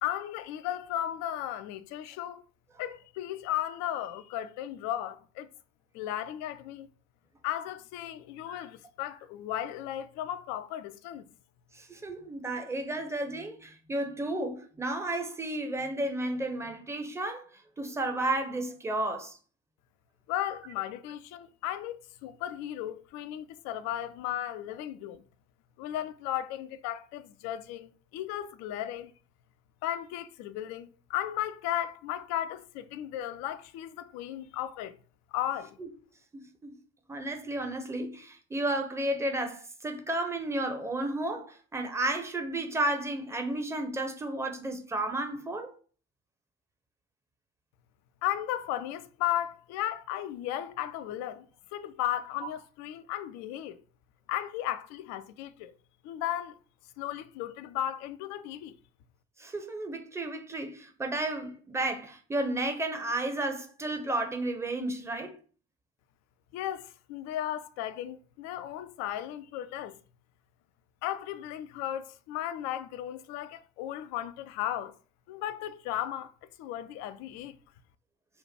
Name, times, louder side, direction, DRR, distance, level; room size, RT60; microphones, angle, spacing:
voice 1, 0.0-2.4 2.8-5.5 5.9-6.9 7.4-11.2 20.3-25.2 25.8-29.1 29.8-35.0 35.3-35.8 48.2-51.5 51.7-53.8 54.3-55.7 56.0-56.6 57.0-58.7 66.5-69.9 71.0-74.9 75.3-76.3 76.6-77.5, left 12 dB, 45° left, 0.5 m, -35 dB
voice 2, 11.7-17.5 17.8-19.4 35.8-35.9 36.3-36.8 37.1-45.7 59.4-65.3, right 2 dB, 5° right, 0.8 m, -32 dB
4.2 x 2.4 x 4.5 m
figure-of-eight pair, 65°, 40 cm